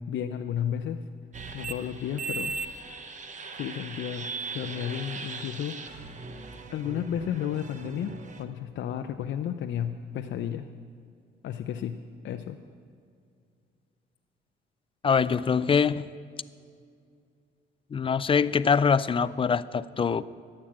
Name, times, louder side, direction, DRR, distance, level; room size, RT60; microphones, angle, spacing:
voice 1, 0.1-1.0 1.5-2.5 3.5-6.1 6.7-8.1 8.4-10.7 11.4-12.0 12.2-12.6, left 9 dB, 70° left, 6 dB, 0.6 m, -32 dB
sound 1, 1.3-8.4, right 4 dB, 40° right, 1.1 m, -38 dB
voice 2, 15.0-16.1 17.9-20.3, left 6 dB, 25° left, 17 dB, 0.4 m, -24 dB
13.0 x 8.8 x 7.6 m, 2.3 s
cardioid pair, 90°, 20 cm